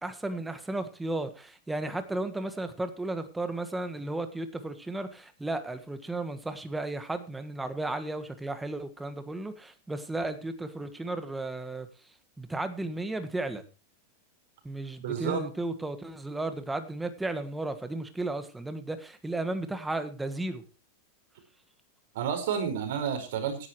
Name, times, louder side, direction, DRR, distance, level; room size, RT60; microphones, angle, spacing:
voice 1, 0.0-11.9 12.4-13.6 14.6-20.6, right 2 dB, 5° right, 9 dB, 1.4 m, -34 dB
voice 2, 15.0-15.4 22.1-23.7, right 7 dB, 65° right, 5 dB, 5.0 m, -30 dB
16.5 x 11.0 x 3.1 m, 0.34 s
supercardioid pair, 165°, 0 cm